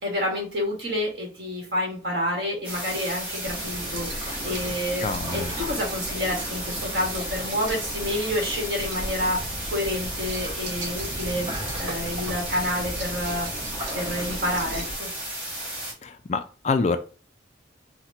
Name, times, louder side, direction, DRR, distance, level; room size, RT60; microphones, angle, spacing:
voice 1, 0.0-13.5 13.9-15.1, left 1 dB, 55° right, -1 dB, 1.4 m, -29 dB
sound 1, 2.6-15.9, right 1 dB, 10° right, 1.4 m, -34 dB
sound 2, 2.8-15.0, right 2 dB, 80° right, 1.0 m, -43 dB
sound 3, 3.4-15.0, equal, 30° right, 0.7 m, -37 dB
voice 2, 5.0-5.5 16.0-17.0, left 4 dB, 35° left, 9 dB, 0.3 m, -26 dB
4.2 x 2.1 x 2.6 m, 0.36 s
head